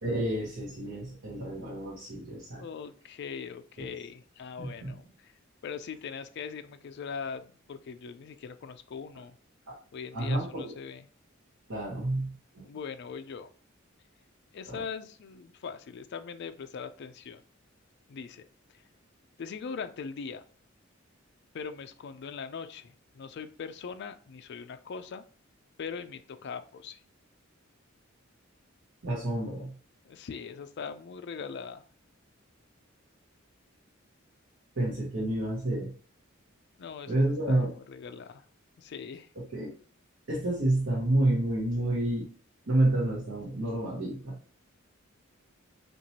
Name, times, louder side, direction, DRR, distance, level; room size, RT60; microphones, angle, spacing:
voice 1, 0.0-2.6 3.8-3.9 4.6-4.9 10.1-10.7 11.7-12.7 14.6-14.8 29.0-29.7 34.8-35.9 37.1-37.7 39.5-39.7 40.3-42.3 42.7-44.3, right 1 dB, 80° right, -6 dB, 1.3 m, -29 dB
voice 2, 2.5-5.3 5.6-9.4 9.9-11.0 12.6-13.5 14.5-17.4 18.1-18.4 19.4-20.4 21.5-25.2 25.8-27.0 30.1-31.8 36.8-38.4 38.8-39.3, left 6 dB, 55° left, 9 dB, 0.4 m, -41 dB
4.5 x 2.9 x 2.8 m, 0.42 s
head